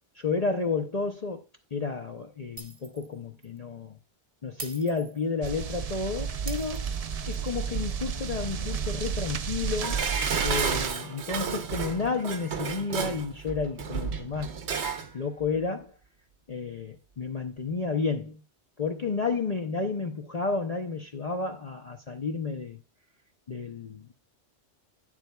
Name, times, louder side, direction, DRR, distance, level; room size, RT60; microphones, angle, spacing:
voice 1, 0.2-1.4 1.7-4.0 4.4-6.8 7.3-10.1 10.4-14.6 15.1-15.9 16.5-18.4 18.8-22.8 23.5-24.1, left 4 dB, 40° left, 0.7 m, -31 dB
Shatter, 2.6-3.1 3.4-3.6 4.6-5.6 6.5-7.5, right 3 dB, 35° right, 0.8 m, -43 dB
sound 1, 5.4-10.9, right 7 dB, 50° right, 0.4 m, -32 dB
Dishes pots and pans, 9.8-15.1 15.4-15.5, right 5 dB, 75° right, 1.1 m, -32 dB
9.3 x 7.3 x 2.3 m
omnidirectional pair, 1.2 m